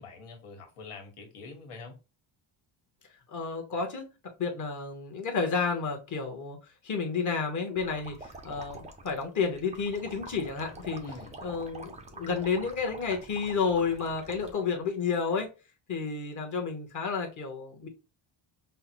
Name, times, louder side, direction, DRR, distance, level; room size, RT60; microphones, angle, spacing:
voice 1, 0.0-2.0 11.0-11.4, left 4 dB, 85° left, 1.5 m, -45 dB
voice 2, 3.3-4.0 4.4-6.6 6.8-11.0 11.4-15.5 15.9-17.9, left 5 dB, 35° left, 0.9 m, -31 dB
sound 1, 7.8-14.5, right 3 dB, 15° right, 0.3 m, -46 dB
5.5 x 2.0 x 2.9 m
cardioid pair, 170°, 50 cm